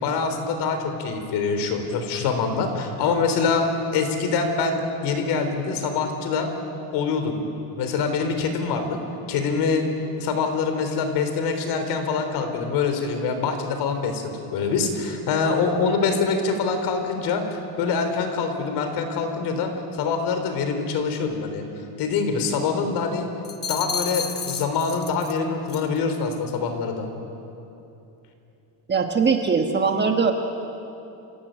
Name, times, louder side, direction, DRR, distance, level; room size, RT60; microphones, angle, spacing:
voice 1, 0.0-3.7 3.9-6.5 6.9-7.5 7.8-9.0 9.3-9.8 10.2-21.6 22.0-23.3 23.7-27.1, left 5 dB, 75° left, 6 dB, 3.8 m, -25 dB
sound 1, 23.4-25.4 25.7-26.0, left 6 dB, 25° left, 1.2 m, -31 dB
voice 2, 28.9-30.3, right 5 dB, 25° right, 4 dB, 1.4 m, -21 dB
28.5 x 16.5 x 9.0 m, 2.8 s
cardioid pair, 150°, 40 cm